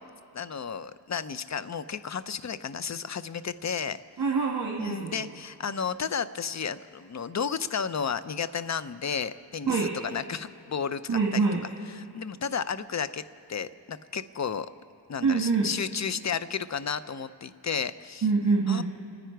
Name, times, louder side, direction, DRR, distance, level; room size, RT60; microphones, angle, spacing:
voice 1, 0.3-4.0 4.8-11.4 12.0-13.2 13.5-14.7 15.1-18.3 18.7-18.8, left 6 dB, 40° left, 14 dB, 0.6 m, -32 dB
voice 2, 4.2-5.2 9.7-9.9 11.1-11.6 15.2-15.7 18.2-18.8, right 4 dB, 50° right, -3 dB, 1.9 m, -25 dB
29.5 x 10.0 x 4.6 m, 2.4 s
cardioid pair, 65°, 43 cm